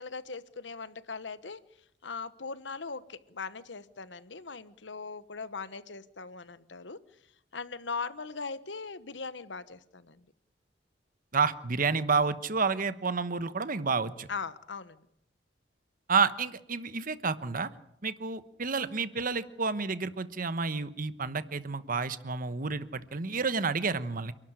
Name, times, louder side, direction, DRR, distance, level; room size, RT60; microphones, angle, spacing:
voice 1, 0.0-1.6 2.0-7.0 7.5-10.2 14.3-15.0, left 4 dB, 75° left, 15 dB, 1.2 m, -40 dB
voice 2, 11.3-14.3 16.1-17.7 18.0-24.3, right 5 dB, 50° right, 13 dB, 1.1 m, -30 dB
28.5 x 12.5 x 9.9 m, 0.76 s
head